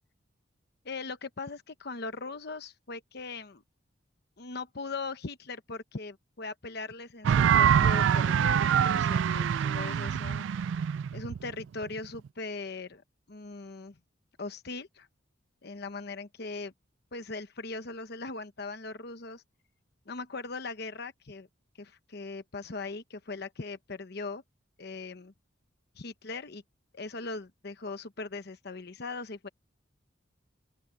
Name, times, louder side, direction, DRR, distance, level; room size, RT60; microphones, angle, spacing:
voice 1, 0.8-3.6 4.4-10.5 11.1-14.0 14.4-15.1 15.6-16.7 17.1-19.4 20.1-21.5 21.8-24.4 24.8-25.3 25.9-26.6 26.9-29.5, left 3 dB, 55° left, 1.0 m, -40 dB
sound 1, 7.2-12.1, right 8 dB, 70° right, 0.3 m, -25 dB
open air
head